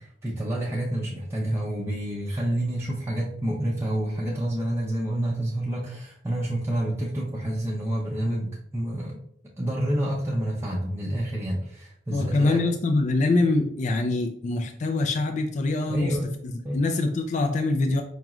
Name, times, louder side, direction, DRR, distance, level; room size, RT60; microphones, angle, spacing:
voice 1, 0.0-9.2 9.6-12.6 15.9-16.3 16.6-16.8, right 1 dB, 15° right, -5 dB, 0.5 m, -28 dB
voice 2, 12.1-16.2 16.4-18.0, left 2 dB, 40° left, 5 dB, 0.3 m, -24 dB
4.8 x 3.0 x 2.4 m, 0.66 s
head